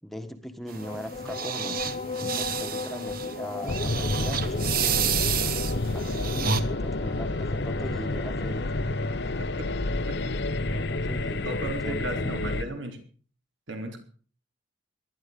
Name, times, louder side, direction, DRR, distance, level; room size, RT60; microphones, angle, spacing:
voice 1, 0.0-1.8 2.3-5.3 5.9-8.8 10.7-12.5, equal, ahead, 6 dB, 1.5 m, -40 dB
sound 1, 0.7-12.6, left 3 dB, 30° left, 0.9 m, -38 dB
sound 2, 0.7-6.6, right 7 dB, 45° right, 1.4 m, -30 dB
sound 3, 3.7-12.6, left 2 dB, 60° left, 0.9 m, -29 dB
voice 2, 11.4-13.0 13.7-14.0, right 1 dB, 75° right, 4 dB, 4.3 m, -35 dB
20.0 x 12.0 x 5.3 m, 0.42 s
head